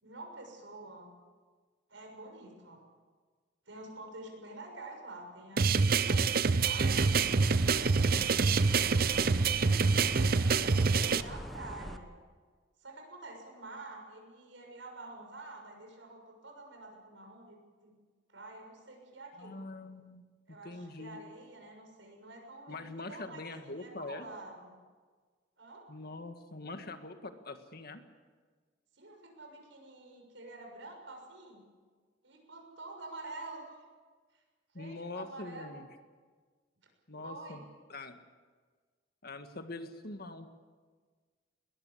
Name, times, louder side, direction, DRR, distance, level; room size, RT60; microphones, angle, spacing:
voice 1, 0.0-1.1 1.9-2.8 3.6-7.0 7.8-12.1 12.8-18.0 18.3-19.8 20.5-24.7 25.6-25.8 28.9-31.6 32.2-33.6 34.3-34.4 34.7-35.8 37.2-37.7, right 2 dB, 85° right, 2 dB, 6.7 m, -48 dB
sound 1, 5.6-11.2, right 4 dB, 50° right, 0.6 m, -26 dB
sound 2, 6.9-12.0, equal, ahead, 0.9 m, -43 dB
voice 2, 19.4-20.2 20.6-21.2 22.7-24.3 25.9-28.0 34.7-35.9 37.1-37.6 37.9-38.2 39.2-40.5, left 2 dB, 55° left, 7 dB, 1.8 m, -43 dB
21.0 x 20.0 x 8.5 m, 1.5 s
head